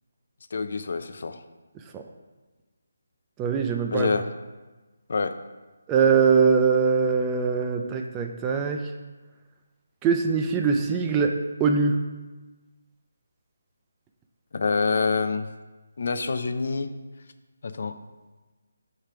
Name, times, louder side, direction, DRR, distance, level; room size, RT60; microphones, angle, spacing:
voice 1, 0.5-1.4 3.9-4.3 5.1-5.3 14.5-15.5 16.0-16.9 17.6-17.9, left 4 dB, 50° left, 10 dB, 0.5 m, -26 dB
voice 2, 3.4-4.1 5.9-8.8 10.0-11.3 11.6-12.0, right 5 dB, 10° right, 4 dB, 0.3 m, -22 dB
5.0 x 4.5 x 5.7 m, 1.2 s
hypercardioid pair, 170°, 0 cm